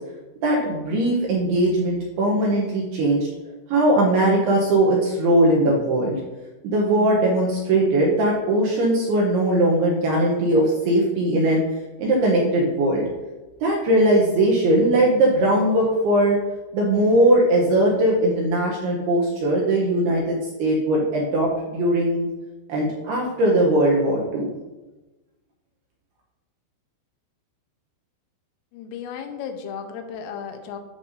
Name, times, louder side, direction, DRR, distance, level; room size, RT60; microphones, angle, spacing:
voice 1, 0.4-3.3 3.7-6.2 6.6-11.6 12.0-13.0 13.6-16.4 16.7-22.3 22.7-24.5, right 1 dB, 75° right, -3 dB, 2.4 m, -20 dB
voice 2, 28.7-30.8, left 7 dB, 90° left, 5 dB, 3.4 m, -34 dB
13.5 x 5.4 x 2.7 m, 1.1 s
omnidirectional pair, 5.8 m